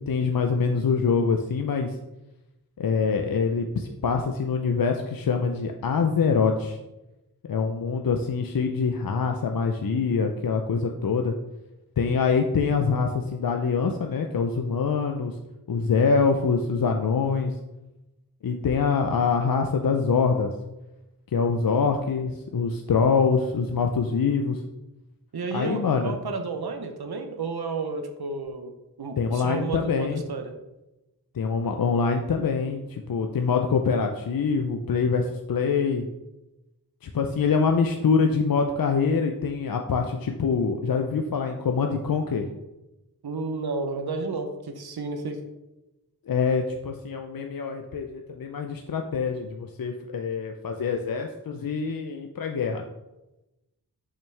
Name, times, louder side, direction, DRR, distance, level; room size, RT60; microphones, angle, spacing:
voice 1, 0.0-2.0 2.8-6.8 7.5-11.3 12.0-15.4 15.7-17.5 18.4-20.5 21.3-24.6 25.5-26.1 29.2-30.2 31.3-36.1 37.0-42.5 46.3-52.8, left 5 dB, 65° left, 4 dB, 0.6 m, -24 dB
voice 2, 25.3-28.7 29.0-30.5 43.2-45.4, right 3 dB, 85° right, 6 dB, 0.8 m, -31 dB
7.0 x 5.7 x 3.3 m, 0.98 s
wide cardioid pair, 70°, 37 cm